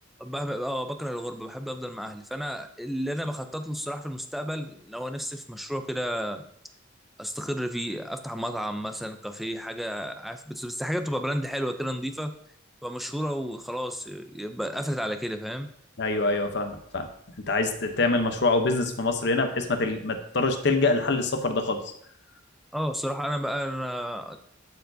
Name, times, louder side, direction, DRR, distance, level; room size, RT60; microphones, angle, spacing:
voice 1, 0.2-6.4 7.2-12.3 12.8-15.7 22.7-24.4, equal, ahead, 7 dB, 0.4 m, -32 dB
voice 2, 16.0-17.1 17.5-21.8, left 3 dB, 60° left, 6 dB, 0.8 m, -25 dB
12.0 x 4.5 x 2.7 m, 0.69 s
head